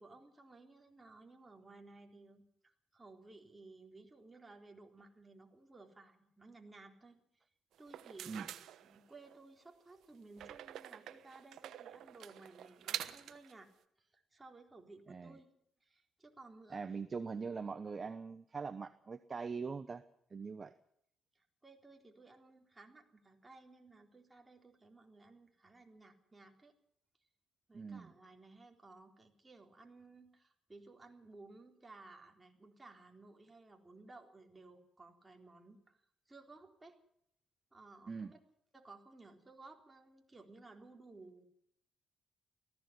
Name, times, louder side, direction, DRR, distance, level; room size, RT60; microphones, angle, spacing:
voice 1, 0.0-7.4 7.8-13.7 14.0-15.5 15.8-17.0 21.3-26.7 27.7-37.0 37.7-38.4 38.7-41.4, right 3 dB, 15° right, 3 dB, 4.0 m, -58 dB
sound 1, 7.8-9.4 10.4-13.5, right 11 dB, 75° right, 1.2 m, -46 dB
voice 2, 16.7-20.0 20.3-20.7 27.7-28.1 38.1-38.3, right 5 dB, 35° right, 12 dB, 0.9 m, -42 dB
18.5 x 15.5 x 9.5 m, 0.71 s
cardioid pair, 90°, 0 cm